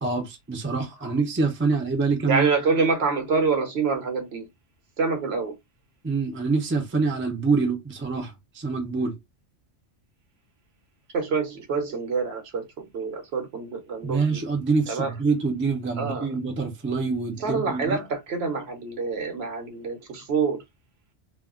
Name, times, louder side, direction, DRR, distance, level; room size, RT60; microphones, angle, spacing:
voice 1, 0.0-2.5 6.0-9.2 14.0-18.0, right 4 dB, 15° right, 0.5 m, -26 dB
voice 2, 2.3-4.5 5.0-5.5 11.1-14.4 14.9-15.1 16.0-16.3 17.4-20.6, right 4 dB, 65° right, 1.0 m, -26 dB
2.4 x 2.2 x 3.6 m
omnidirectional pair, 1.2 m